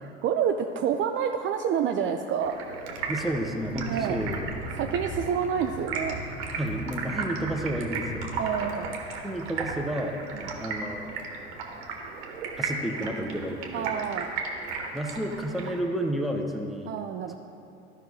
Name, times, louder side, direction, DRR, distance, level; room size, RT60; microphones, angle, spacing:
voice 1, 0.2-3.0 3.8-4.2 4.8-6.4 8.4-8.9 10.3-10.5 13.7-14.3 16.9-17.4, right 8 dB, 35° right, 5 dB, 0.5 m, -28 dB
Stream, 2.4-15.8, right 4 dB, 65° right, 1.4 m, -36 dB
sound 1, 2.6-13.5, equal, 60° left, 1.6 m, -41 dB
voice 2, 3.1-4.4 6.6-8.3 9.2-10.2 10.6-11.1 12.6-13.9 14.9-16.9 17.3-17.4, right 1 dB, ahead, 2 dB, 1.0 m, -31 dB
14.0 x 5.6 x 3.1 m, 2.6 s
figure-of-eight pair, 70°, 34 cm